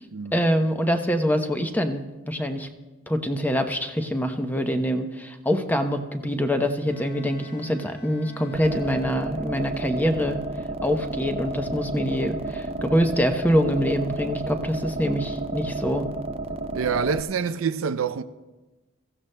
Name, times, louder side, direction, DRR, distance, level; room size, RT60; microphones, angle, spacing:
voice 1, 0.3-2.7 3.1-10.4 10.8-16.1, equal, 10° left, 0.7 m, -25 dB
Bowed string instrument, 6.8-9.6, equal, 30° left, 5.7 m, -47 dB
sound 1, 8.5-17.2, right 2 dB, 30° right, 0.5 m, -32 dB
voice 2, 16.7-18.2, right 6 dB, 85° right, 0.5 m, -26 dB
23.5 x 15.0 x 2.2 m
head